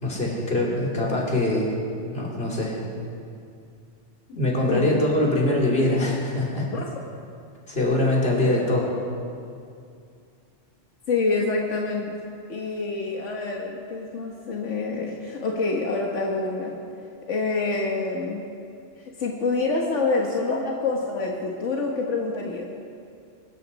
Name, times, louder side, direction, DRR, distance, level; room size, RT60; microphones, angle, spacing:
voice 1, 0.0-1.7 2.1-2.8 4.3-6.7 7.7-8.9, left 1 dB, 55° left, -4 dB, 3.3 m, -23 dB
voice 2, 4.7-5.1 6.7-6.8 11.1-12.1 12.5-16.8 17.3-18.4 19.2-22.7, left 3 dB, 85° left, -1 dB, 1.6 m, -26 dB
24.0 x 13.0 x 4.1 m, 2.4 s
omnidirectional pair, 1.2 m